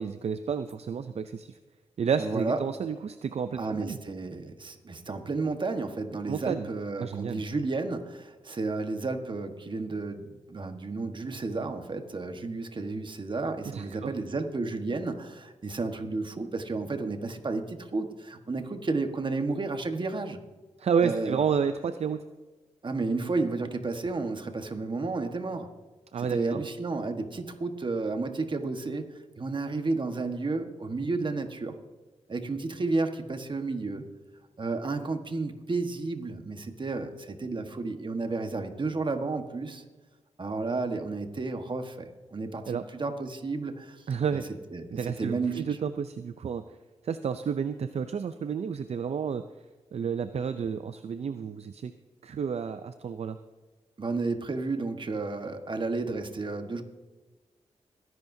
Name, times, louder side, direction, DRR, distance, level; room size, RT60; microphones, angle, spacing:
voice 1, 0.0-1.6 2.0-4.0 6.3-6.7 7.0-7.4 13.7-14.1 20.8-22.2 26.1-26.6 42.7-42.8 44.1-44.5 44.9-46.6 47.0-49.4 49.9-51.9 52.2-53.4, right 6 dB, 60° right, 11 dB, 0.5 m, -30 dB
voice 2, 2.2-2.6 3.6-20.4 21.0-21.4 22.8-25.7 26.2-29.1 29.4-31.8 32.3-34.1 34.6-39.8 40.4-44.0 44.3-44.4 44.7-44.9 45.2-45.7 54.0-56.8, right 3 dB, 40° right, 6 dB, 1.3 m, -32 dB
21.5 x 11.0 x 2.7 m, 1.3 s
cardioid pair, 70°, 12 cm